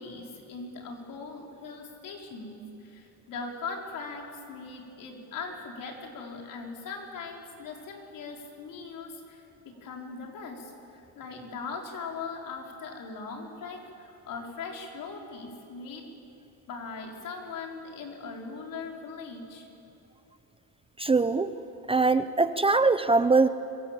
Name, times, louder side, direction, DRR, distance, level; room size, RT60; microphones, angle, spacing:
voice 1, 0.0-16.0 16.7-19.7, left 4 dB, 60° left, 1 dB, 4.6 m, -40 dB
voice 2, 21.0-21.5 21.9-23.5, right 3 dB, 15° right, 11 dB, 0.6 m, -22 dB
25.5 x 24.0 x 7.6 m, 2.8 s
cardioid pair, 125°, 36 cm